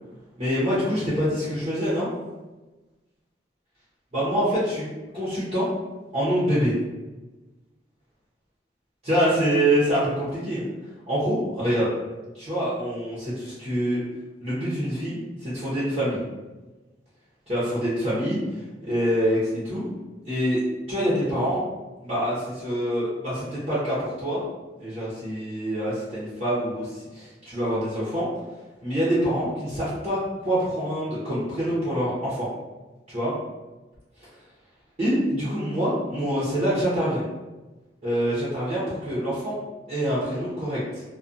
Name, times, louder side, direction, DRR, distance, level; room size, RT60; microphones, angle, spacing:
voice 1, 0.4-2.1 4.1-4.9 5.1-5.7 6.1-6.7 9.1-10.6 11.1-11.9 12.3-14.0 14.4-16.3 17.5-18.4 18.8-19.8 20.3-20.6 20.9-21.7 22.0-24.4 24.8-28.3 28.8-32.5 33.1-33.3 35.0-37.2 38.0-39.6 39.9-41.0, equal, 40° right, -10 dB, 0.8 m, -25 dB
2.4 x 2.3 x 2.5 m, 1.2 s
head